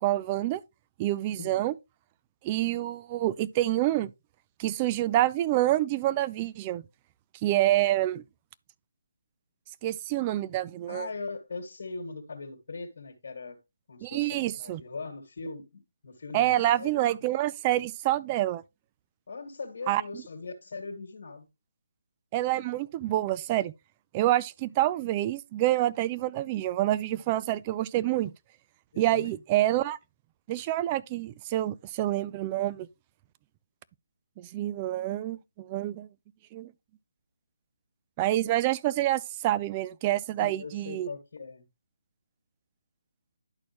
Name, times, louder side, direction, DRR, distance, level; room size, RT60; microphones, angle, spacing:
voice 1, 0.0-0.6 1.0-1.7 2.4-4.1 4.6-6.8 7.4-8.2 9.8-11.1 14.0-14.8 16.3-18.6 19.9-20.0 22.3-23.7 24.1-28.3 29.0-30.0 30.5-32.9 34.4-36.1 36.5-36.7 38.2-41.1, right 14 dB, 20° right, 0.3 m, -27 dB
voice 2, 1.4-1.7 10.9-13.6 13.9-17.1 19.3-21.5 28.9-29.4 40.4-41.7, left 3 dB, 55° left, 1.9 m, -40 dB
11.5 x 4.3 x 3.0 m
hypercardioid pair, 160°, 0 cm